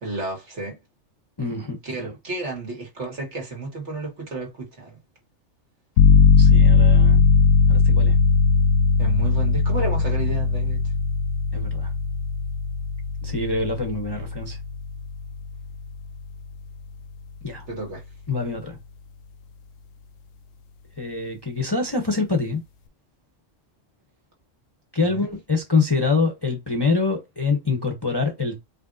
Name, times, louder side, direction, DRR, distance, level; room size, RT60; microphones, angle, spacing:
voice 1, 0.0-0.8 1.8-5.0 9.0-10.8 17.7-18.0 25.0-25.2, right 2 dB, 60° right, 2.2 m, -32 dB
voice 2, 1.4-2.1 6.3-7.3 7.7-8.1 11.5-11.9 13.2-14.6 17.4-17.6 18.3-18.8 21.0-22.6 24.9-28.6, left 4 dB, 20° left, 0.8 m, -25 dB
sound 1, 6.0-16.5, left 5 dB, 90° left, 1.0 m, -19 dB
5.1 x 3.2 x 2.6 m
omnidirectional pair, 1.3 m